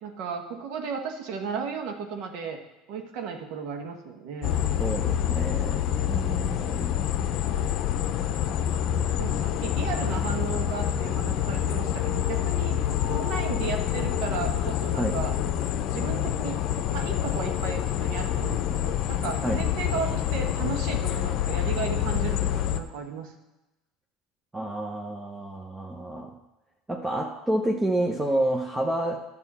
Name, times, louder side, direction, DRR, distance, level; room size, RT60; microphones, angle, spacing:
voice 1, 0.0-2.6 2.9-4.5 8.2-8.6 9.2-12.8 13.1-15.3 15.9-16.6 16.9-23.3, right 6 dB, 70° right, 4 dB, 1.3 m, -35 dB
sound 1, 4.4-22.8, left 10 dB, 55° left, 0.7 m, -27 dB
voice 2, 4.8-6.9 15.0-15.2 19.4-19.6 24.5-26.4 26.9-29.2, right 1 dB, 15° right, 2 dB, 0.9 m, -29 dB
11.0 x 7.0 x 4.3 m, 0.99 s
hypercardioid pair, 90°, 0 cm